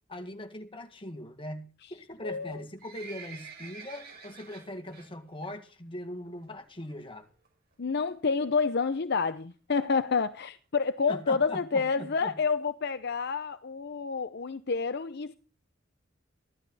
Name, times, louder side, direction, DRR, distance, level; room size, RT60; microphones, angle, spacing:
voice 1, 0.1-7.3 11.1-12.4, left 1 dB, 25° left, 2.0 m, -41 dB
voice 2, 2.2-2.6 7.8-15.3, left 5 dB, 60° left, 0.7 m, -29 dB
Livestock farm animals working animals, 2.4-5.1 5.4-5.7 6.0-6.1 6.8-6.9 7.2-7.3 7.4-7.5 8.1-8.3 8.9-9.0 9.2-9.3 9.5-9.6 9.8-9.9 10.4-10.5 11.0-11.1 11.5-11.6, right 5 dB, 50° right, 5.7 m, -47 dB
15.5 x 12.0 x 4.1 m
head